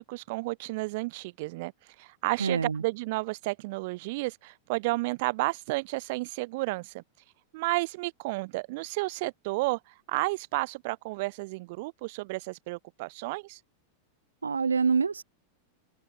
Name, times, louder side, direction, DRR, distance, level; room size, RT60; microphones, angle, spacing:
voice 1, 0.0-1.7 2.0-7.0 7.5-9.8 10.1-13.6, right 23 dB, 50° right, 5.4 m, -32 dB
voice 2, 2.4-2.8 14.4-15.2, right 5 dB, 75° right, 3.1 m, -26 dB
figure-of-eight pair, 90°, 0 cm